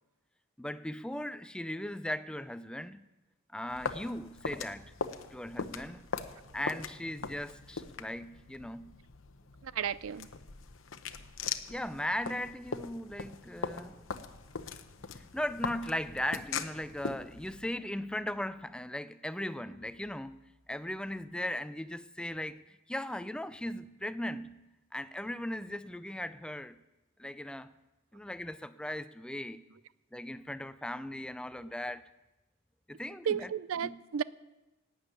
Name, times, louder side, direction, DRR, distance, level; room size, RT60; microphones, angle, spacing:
voice 1, 0.6-3.0 3.5-4.9 5.3-6.1 6.5-9.0 11.7-14.1 15.1-20.4 20.7-22.6 22.9-24.6 24.9-26.8 27.2-27.7 28.1-29.7 30.1-32.0 32.9-33.5 33.8-34.0, left 1 dB, 5° left, 0.4 m, -38 dB
sound 1, 3.7-17.6, left 5 dB, 70° left, 0.8 m, -41 dB
voice 2, 9.6-10.3 33.3-34.2, right 8 dB, 80° right, 0.4 m, -33 dB
12.0 x 8.8 x 9.1 m
head